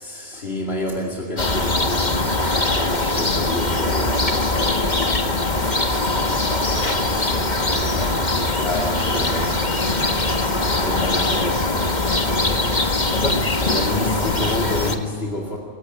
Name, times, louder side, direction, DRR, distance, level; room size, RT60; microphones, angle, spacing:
voice 1, 0.0-2.2 2.5-9.5 10.8-11.6 13.5-15.6, left 1 dB, 65° left, -1 dB, 2.7 m, -29 dB
sound 1, 1.4-15.0, left 2 dB, 40° left, 1.9 m, -21 dB
26.5 x 16.0 x 9.9 m, 2.3 s
omnidirectional pair, 1.1 m